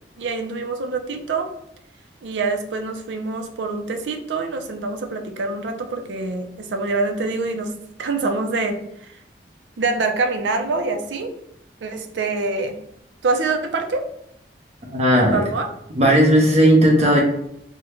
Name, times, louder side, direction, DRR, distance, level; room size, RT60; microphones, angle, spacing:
voice 1, 0.2-1.5 2.2-7.7 8.0-9.1 9.8-11.3 11.8-12.7 13.2-14.1 15.1-15.7, right 3 dB, 80° right, 5 dB, 0.5 m, -25 dB
voice 2, 14.9-15.4 16.0-17.2, equal, 40° right, -1 dB, 0.8 m, -15 dB
3.6 x 2.1 x 3.0 m, 0.76 s
head